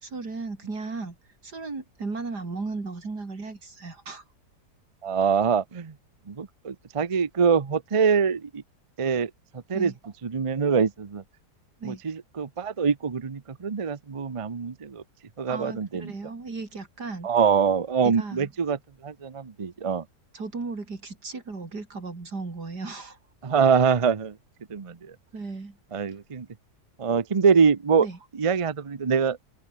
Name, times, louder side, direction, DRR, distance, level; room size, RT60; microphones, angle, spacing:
voice 1, 0.0-1.2 1.4-4.2 9.7-9.9 11.8-12.0 15.5-17.3 18.0-18.5 20.3-23.2 25.3-25.8 28.0-28.2, right 3 dB, 85° right, 4.5 m, -35 dB
voice 2, 5.0-5.9 6.3-8.6 9.0-9.3 9.7-9.9 10.2-11.2 11.8-15.0 15.4-16.1 17.2-20.0 23.4-24.4 24.7-25.1 25.9-26.5 27.0-28.1 28.3-29.4, right 6 dB, 30° right, 0.6 m, -24 dB
open air
omnidirectional pair, 1.7 m